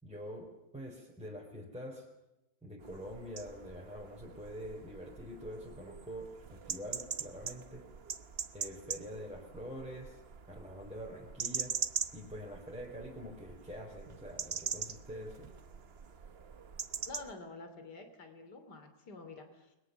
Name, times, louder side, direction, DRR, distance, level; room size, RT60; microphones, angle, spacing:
voice 1, 0.0-2.1 2.6-7.9 8.5-10.2 10.5-11.8 12.1-15.5, equal, 5° right, -2 dB, 4.3 m, -45 dB
sound 1, 2.8-17.3, right 6 dB, 40° right, 1.0 m, -42 dB
voice 2, 17.1-19.8, left 3 dB, 60° left, 8 dB, 3.5 m, -48 dB
30.0 x 22.0 x 7.0 m, 0.93 s
omnidirectional pair, 2.0 m